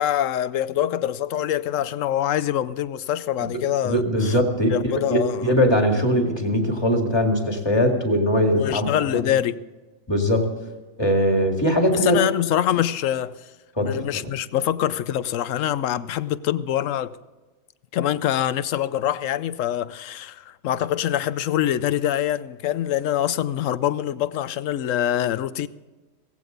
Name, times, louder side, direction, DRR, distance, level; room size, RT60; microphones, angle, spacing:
voice 1, 0.0-4.4 4.7-5.5 8.5-9.6 11.9-13.5 13.8-17.2 17.9-25.7, left 11 dB, 70° left, 0.9 m, -24 dB
voice 2, 3.4-9.3 10.1-10.6 11.0-12.2 13.8-14.0, equal, 20° left, 2.1 m, -21 dB
17.5 x 15.5 x 4.0 m
omnidirectional pair, 1.5 m